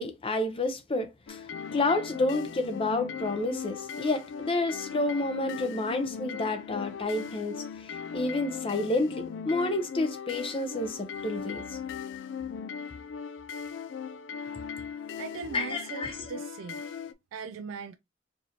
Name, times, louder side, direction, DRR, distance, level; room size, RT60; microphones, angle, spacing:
voice 1, 0.0-1.4 1.7-11.8 15.5-16.2, left 2 dB, 30° left, 0.7 m, -30 dB
sound 1, 1.3-17.1, left 6 dB, 65° left, 0.4 m, -38 dB
voice 2, 15.2-16.8 17.3-17.9, right 6 dB, 85° right, 0.3 m, -39 dB
4.6 x 2.6 x 2.8 m
head